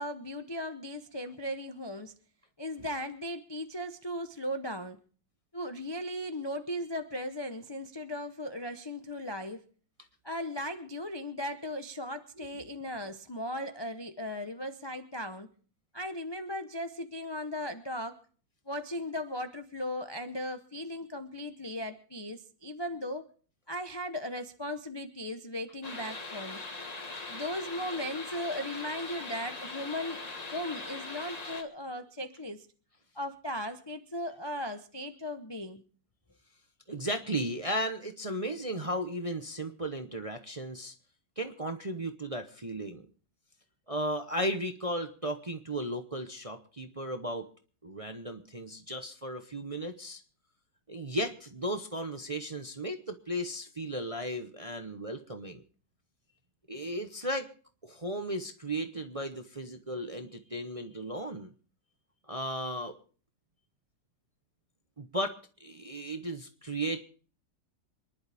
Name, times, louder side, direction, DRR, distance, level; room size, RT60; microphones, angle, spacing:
voice 1, 0.0-2.1 2.6-5.0 5.5-9.6 10.2-15.5 15.9-18.2 18.7-23.3 23.7-26.6 27.3-30.2 30.5-32.7 33.1-35.8, left 1 dB, 40° left, 7 dB, 0.3 m, -37 dB
sound 1, 25.8-31.6, left 3 dB, 25° left, 1.4 m, -41 dB
voice 2, 36.9-40.9 41.4-43.1 43.9-47.5 47.8-50.2 50.9-55.6 56.7-57.5 57.8-61.5 62.3-63.0 65.0-67.1, right 1 dB, 35° right, 6 dB, 0.6 m, -35 dB
26.5 x 11.0 x 3.5 m, 0.42 s
omnidirectional pair, 2.0 m